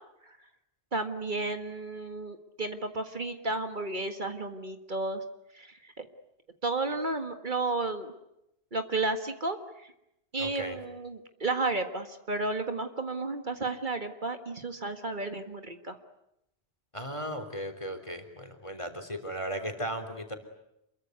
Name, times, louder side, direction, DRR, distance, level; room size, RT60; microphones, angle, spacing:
voice 1, 0.9-5.2 5.5-6.1 6.6-8.1 8.7-9.6 10.3-16.0, right 2 dB, 50° right, 7 dB, 1.9 m, -32 dB
voice 2, 10.4-10.8 16.9-20.4, equal, 30° left, 7 dB, 3.6 m, -36 dB
28.0 x 23.0 x 9.4 m, 0.83 s
omnidirectional pair, 1.1 m